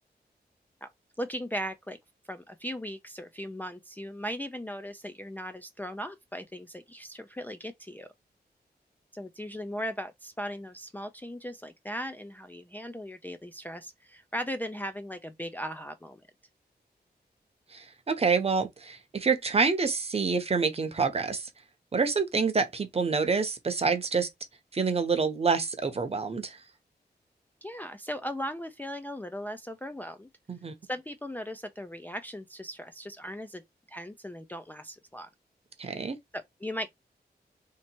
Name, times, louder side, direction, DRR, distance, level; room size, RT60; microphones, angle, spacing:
voice 1, 1.2-2.0 2.3-8.1 9.1-16.2 27.6-30.3 30.8-33.6 33.9-35.3 36.3-36.9, equal, 10° left, 0.4 m, -38 dB
voice 2, 17.7-21.5 21.9-24.3 24.7-26.6 30.5-30.7 35.8-36.2, right 5 dB, 35° right, 0.8 m, -27 dB
3.1 x 2.9 x 4.4 m
wide cardioid pair, 150°, 17 cm